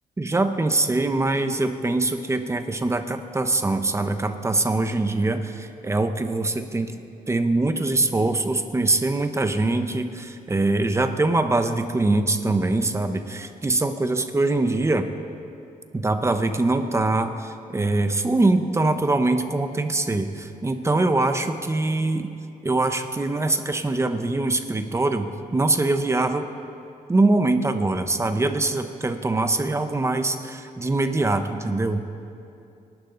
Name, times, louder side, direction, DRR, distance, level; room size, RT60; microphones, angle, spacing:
voice 1, 0.2-7.0 7.3-15.1 15.9-22.3 22.6-26.5 27.1-32.0, right 2 dB, 20° right, 8 dB, 1.0 m, -23 dB
28.0 x 12.0 x 3.9 m, 2.6 s
cardioid pair, 125°, 15 cm